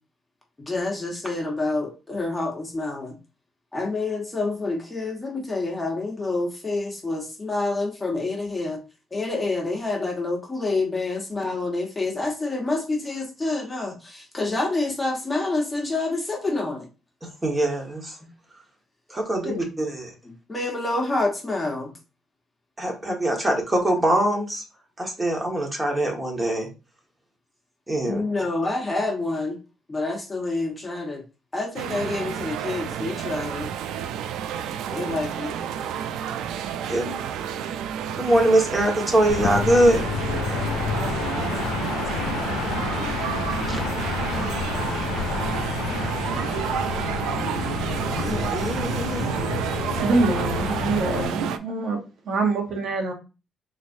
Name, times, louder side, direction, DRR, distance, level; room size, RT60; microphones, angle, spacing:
voice 1, 0.7-3.1 3.7-8.8 9.1-16.9 19.4-19.7 20.5-21.9 28.0-29.6 29.9-31.2 31.5-33.7 34.9-35.6, left 2 dB, 15° left, 1.3 m, -27 dB
voice 2, 17.2-18.2 19.1-20.1 22.8-24.6 25.0-26.7 27.9-28.2 36.9-37.2 38.2-40.0 43.7-43.8 48.1-49.3, right 1 dB, 20° right, 1.5 m, -23 dB
sound 1, 31.8-51.6, right 9 dB, 90° right, 0.3 m, -30 dB
sound 2, 39.3-51.3, left 7 dB, 85° left, 0.4 m, -29 dB
voice 3, 50.0-52.0 52.2-53.1, right 3 dB, 65° right, 1.1 m, -24 dB
4.0 x 3.1 x 2.6 m
cardioid pair, 90°, 0 cm